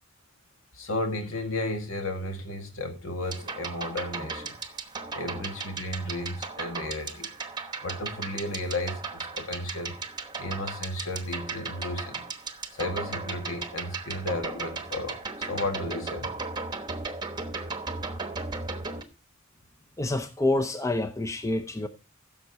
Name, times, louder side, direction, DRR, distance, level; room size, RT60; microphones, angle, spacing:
voice 1, 0.7-4.6 5.1-7.3 7.8-9.9 10.4-12.3 12.7-16.4, left 1 dB, 70° left, 2.0 m, -33 dB
sound 1, 3.2-19.0, right 4 dB, 20° right, 1.0 m, -36 dB
voice 2, 20.0-21.9, left 2 dB, 15° left, 0.6 m, -27 dB
15.0 x 6.6 x 4.1 m
head